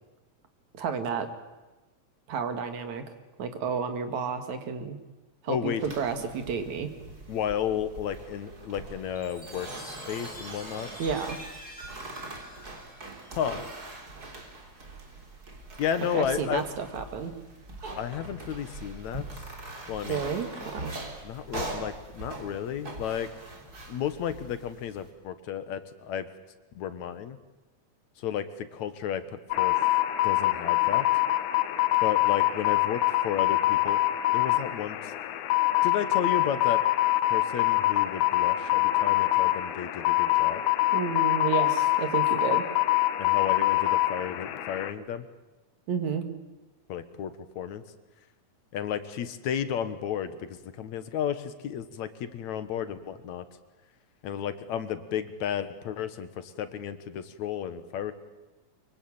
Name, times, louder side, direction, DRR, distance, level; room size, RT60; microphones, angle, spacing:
voice 1, 0.7-1.3 2.3-3.0 3.4-5.0 5.4-6.9 11.0-11.4 16.1-17.3 20.1-20.5 20.7-21.0 40.9-42.7 45.9-46.3, right 6 dB, 70° right, 8 dB, 3.3 m, -31 dB
voice 2, 5.5-6.0 7.3-10.9 13.4-13.6 15.8-16.6 18.0-19.2 19.9-20.2 21.2-23.3 23.9-26.3 26.8-27.4 28.2-29.7 30.2-31.1 32.0-34.0 34.3-35.1 35.8-36.8 37.3-40.6 43.2-45.3 46.9-47.8 48.7-53.4 54.2-58.1, left 9 dB, 75° left, 11 dB, 2.6 m, -33 dB
sound 1, 5.8-25.1, right 2 dB, 30° right, 3.8 m, -42 dB
Chime, 9.2-13.7, equal, 5° left, 7.3 m, -46 dB
sound 2, 29.5-44.9, left 16 dB, 90° left, 2.6 m, -25 dB
24.0 x 23.5 x 8.8 m, 1.1 s
omnidirectional pair, 3.4 m